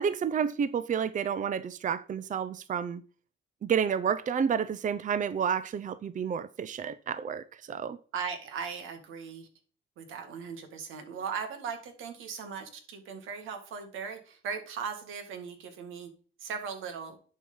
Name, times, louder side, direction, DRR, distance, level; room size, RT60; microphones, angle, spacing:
voice 1, 0.0-3.0 3.6-8.0, right 7 dB, 40° right, 0.6 m, -30 dB
voice 2, 8.1-9.5 10.0-16.1 16.4-17.2, right 6 dB, 90° right, 1.9 m, -38 dB
10.5 x 4.7 x 5.5 m
cardioid pair, 90°, 20 cm